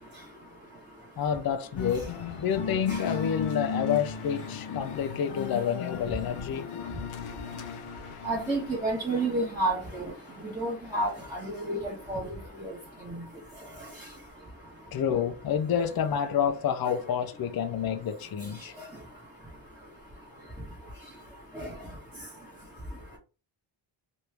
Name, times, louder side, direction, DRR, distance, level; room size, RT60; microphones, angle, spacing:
voice 1, 1.2-2.1 2.4-6.7 14.9-18.7, left 8 dB, 50° left, 0.5 m, -29 dB
sound 1, 1.7-11.2, left 6 dB, 80° left, 0.8 m, -37 dB
voice 2, 8.2-10.1 10.4-11.4 11.7-12.2 12.6-12.7 21.6-21.7, right 2 dB, 5° right, 0.9 m, -29 dB
3.1 x 2.6 x 3.3 m
wide cardioid pair, 150°, 50 cm